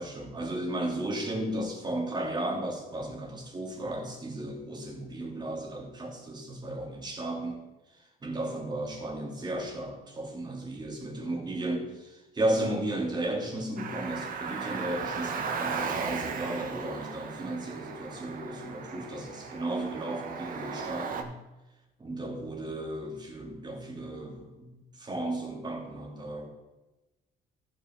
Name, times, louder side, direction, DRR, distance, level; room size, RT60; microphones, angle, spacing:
voice 1, 0.0-7.6 8.2-21.3 22.0-24.7 25.0-26.5, right 1 dB, 25° right, 0 dB, 2.6 m, -34 dB
Car, 13.8-21.2, right 5 dB, 55° right, 1.3 m, -36 dB
14.0 x 6.0 x 4.6 m, 1.1 s
cardioid pair, 110°, 17 cm